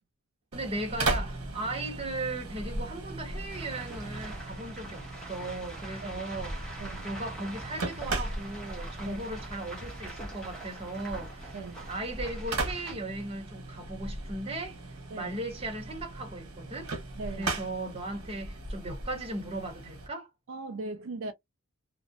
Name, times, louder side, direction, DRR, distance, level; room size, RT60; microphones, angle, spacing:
voice 1, 0.5-11.6 11.9-14.8 15.1-16.9 17.3-20.3, right 2 dB, 25° right, 0.9 m, -37 dB
sound 1, 0.5-20.1, right 2 dB, 85° right, 1.0 m, -38 dB
sound 2, 3.5-12.9, right 1 dB, 5° left, 0.9 m, -44 dB
voice 2, 11.5-11.9 15.1-15.3 17.2-17.5 20.5-21.3, right 3 dB, 60° right, 0.4 m, -39 dB
2.4 x 2.1 x 2.5 m
head